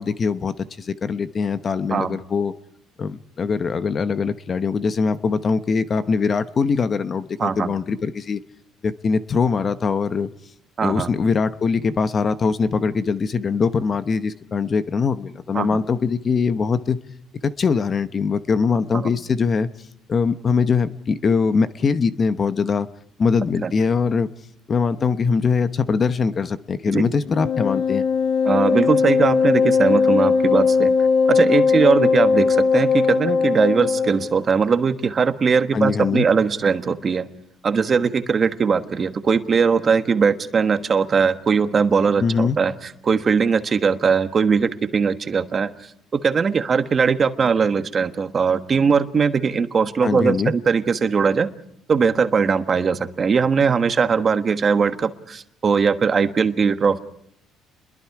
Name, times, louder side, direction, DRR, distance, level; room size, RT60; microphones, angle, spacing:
voice 1, 0.0-2.5 3.0-8.4 8.8-10.3 10.8-17.0 17.4-19.7 20.1-22.9 23.2-24.3 24.7-28.0 35.7-36.3 42.2-42.6 50.0-50.5, left 5 dB, 35° left, 12 dB, 0.8 m, -22 dB
voice 2, 7.4-7.7 10.8-11.1 15.5-15.8 18.9-19.1 23.6-23.7 26.9-27.1 28.4-37.2 37.6-45.7 46.1-51.5 51.9-57.0, right 5 dB, 35° right, 9 dB, 1.3 m, -20 dB
Wind instrument woodwind instrument, 27.3-34.3, left 5 dB, 75° left, 1.6 m, -19 dB
29.0 x 22.0 x 4.8 m, 0.73 s
cardioid pair, 120°, 0 cm